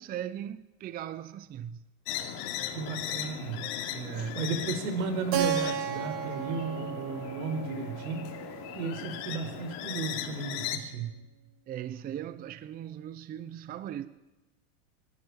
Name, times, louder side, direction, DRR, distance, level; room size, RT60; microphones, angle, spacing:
voice 1, 0.0-1.8 3.9-4.4 11.7-14.1, right 10 dB, 20° right, 0.6 m, -38 dB
sound 1, 2.1-10.8, left 10 dB, 55° left, 2.9 m, -38 dB
voice 2, 2.7-3.6 4.3-8.3 8.7-11.2, right 4 dB, 80° right, 4.5 m, -34 dB
Keyboard (musical), 5.3-9.9, right 9 dB, 45° right, 2.2 m, -34 dB
24.0 x 12.0 x 9.7 m
supercardioid pair, 145°, 42 cm